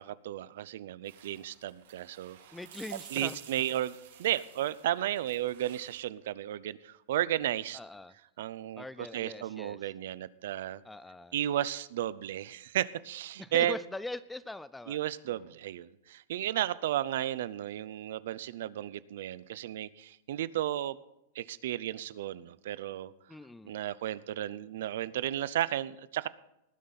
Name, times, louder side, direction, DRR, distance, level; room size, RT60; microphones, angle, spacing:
voice 1, 0.0-2.4 3.1-7.8 8.4-10.8 11.3-13.8 14.9-21.0 21.4-23.1 23.6-26.3, right 12 dB, 65° right, 18 dB, 0.6 m, -33 dB
sound 1, 1.0-6.0, right 9 dB, 85° right, 4.3 m, -52 dB
voice 2, 2.5-3.4 7.7-8.2 8.8-9.9 10.8-11.4 13.4-15.0 15.3-15.5 23.3-23.7, left 2 dB, 5° left, 17 dB, 0.4 m, -42 dB
19.5 x 9.5 x 4.1 m, 0.88 s
supercardioid pair, 165°, 0 cm